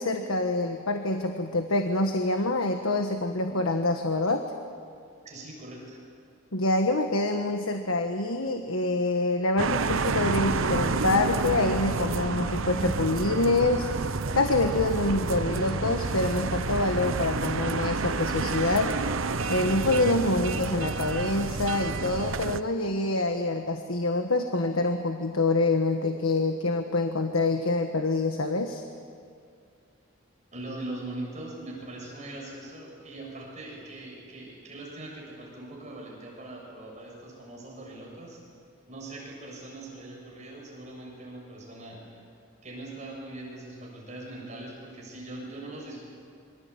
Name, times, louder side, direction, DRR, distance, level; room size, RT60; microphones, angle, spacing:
voice 1, 0.0-4.4 6.5-13.9 14.3-19.0 19.5-28.8, left 2 dB, 75° left, 5 dB, 1.5 m, -26 dB
voice 2, 5.2-6.0 30.5-38.4 38.9-42.0 42.6-46.0, right 2 dB, 35° right, -2 dB, 7.4 m, -41 dB
sound 1, 9.6-22.6, right 4 dB, 70° right, 0.9 m, -29 dB
26.5 x 24.0 x 8.6 m, 2.3 s
head